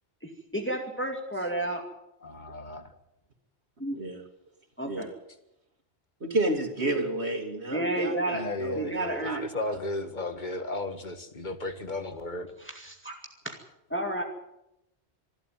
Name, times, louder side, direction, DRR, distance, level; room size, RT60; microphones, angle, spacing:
voice 1, 0.2-1.8 3.8-4.0 4.8-5.1 7.7-8.4 8.7-9.4 12.6-13.2 13.9-14.2, right 1 dB, 10° left, 2 dB, 2.3 m, -31 dB
voice 2, 2.2-2.9 8.3-12.5 12.8-12.9, left 2 dB, 45° left, 9 dB, 1.9 m, -35 dB
voice 3, 6.2-9.4, right 2 dB, 75° right, 5 dB, 3.0 m, -31 dB
25.5 x 12.0 x 9.2 m, 0.84 s
omnidirectional pair, 1.1 m